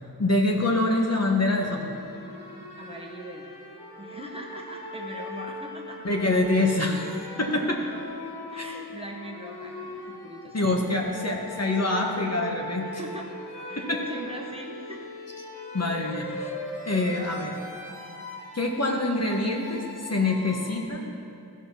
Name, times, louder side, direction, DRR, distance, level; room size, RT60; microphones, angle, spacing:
voice 1, 0.2-2.0 6.0-7.1 7.4-7.8 8.6-8.7 10.5-12.9 13.8-14.0 15.7-16.5 16.8-17.6 18.5-21.0, left 2 dB, 40° left, 0 dB, 1.3 m, -25 dB
sound 1, 1.5-20.9, left 1 dB, 90° left, 1.8 m, -40 dB
voice 2, 2.8-3.5 4.0-6.0 6.5-6.7 7.5-7.9 8.5-10.6 11.0-11.3 12.8-13.3 13.7-15.1 18.3-18.5, equal, 15° right, -1 dB, 1.1 m, -41 dB
14.5 x 5.3 x 5.8 m, 2.5 s
wide cardioid pair, 65°, 39 cm